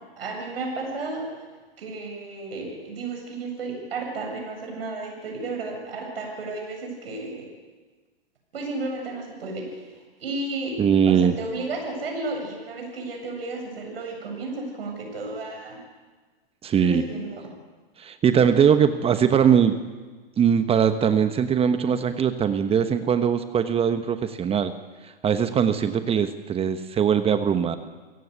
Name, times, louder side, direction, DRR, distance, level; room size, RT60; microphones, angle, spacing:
voice 1, 0.2-1.3 1.8-7.5 8.5-10.8 11.1-15.8 16.8-17.4, right 3 dB, 75° right, 1 dB, 7.7 m, -33 dB
voice 2, 10.8-11.3 16.6-17.0 18.0-19.8 20.4-24.7 25.2-27.8, right 8 dB, 20° right, 10 dB, 1.2 m, -21 dB
28.5 x 17.5 x 8.2 m, 1.3 s
hypercardioid pair, 115°, 30 cm